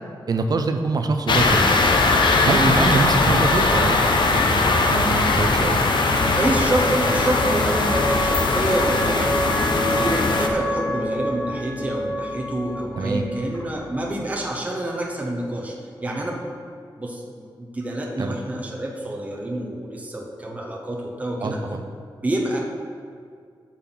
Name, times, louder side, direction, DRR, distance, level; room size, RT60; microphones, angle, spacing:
voice 1, 0.3-1.7 2.5-5.8 13.0-13.2 18.2-18.4 21.4-21.8, right 3 dB, 50° right, 6 dB, 0.5 m, -24 dB
sound 1, 1.3-10.5, left 3 dB, 70° left, 0.7 m, -20 dB
sound 2, 5.4-14.3, equal, 25° left, 1.2 m, -29 dB
voice 2, 6.3-15.7 16.0-16.4 17.0-21.6 22.2-22.6, right 1 dB, 15° right, -1 dB, 0.8 m, -27 dB
8.3 x 5.9 x 4.0 m, 2.2 s
wide cardioid pair, 175°, 8 cm